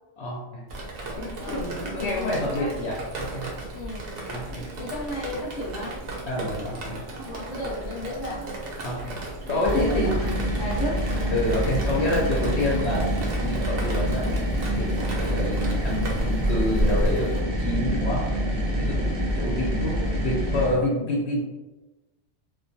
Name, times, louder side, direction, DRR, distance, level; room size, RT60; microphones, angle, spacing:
voice 1, 0.2-0.6 1.1-3.5 4.3-4.6 6.3-7.0 8.8-9.2 9.5-10.1 11.3-18.2 18.5-21.4, left 1 dB, 70° left, -4 dB, 0.8 m, -28 dB
Drip, 0.7-17.4, right 1 dB, 60° right, 0.7 m, -34 dB
voice 2, 1.4-2.7 3.7-4.0 4.8-6.0 7.2-8.6 9.4-11.4 19.9-20.3, left 1 dB, 35° left, -5 dB, 0.8 m, -34 dB
sound 1, 9.6-20.8, equal, 45° right, 0.3 m, -26 dB
2.3 x 2.2 x 2.6 m, 1.1 s
omnidirectional pair, 1.3 m